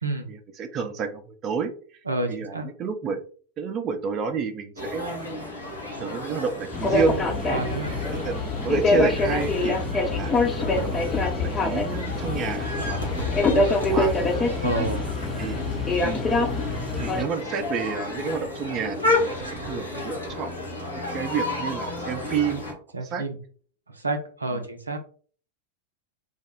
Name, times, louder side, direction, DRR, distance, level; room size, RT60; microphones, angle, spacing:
voice 1, 0.3-2.0 2.3-3.2 3.6-5.5 6.0-7.2 8.0-8.4 8.6-10.3 10.7-14.2 15.4-15.6 16.0-16.2 17.0-20.5 20.9-23.2 24.5-24.7, right 6 dB, 30° right, 6 dB, 0.5 m, -30 dB
voice 2, 2.1-2.7 7.5-8.0 14.6-15.0 22.9-23.4 23.9-25.0, right 2 dB, 80° right, 5 dB, 0.6 m, -29 dB
sound 1, 4.8-22.7, left 2 dB, 85° left, 1.4 m, -32 dB
sound 2, 6.7-17.2, left 3 dB, 20° left, 0.6 m, -25 dB
3.5 x 2.1 x 3.4 m, 0.43 s
figure-of-eight pair, 90°, 0 cm